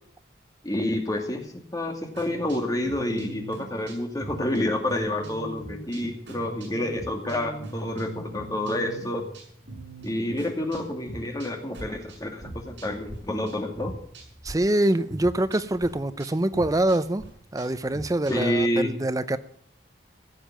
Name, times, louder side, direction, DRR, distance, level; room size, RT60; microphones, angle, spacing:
voice 1, 0.6-9.3 10.0-13.9 18.3-18.9, left 1 dB, 20° left, 3 dB, 2.3 m, -28 dB
sound 1, 2.2-13.2 13.5-14.5 14.8-18.6, right 2 dB, 70° right, 6.7 m, -41 dB
voice 2, 14.4-17.2 17.5-19.4, right 1 dB, 20° right, 13 dB, 0.5 m, -24 dB
16.5 x 7.3 x 9.0 m, 0.65 s
head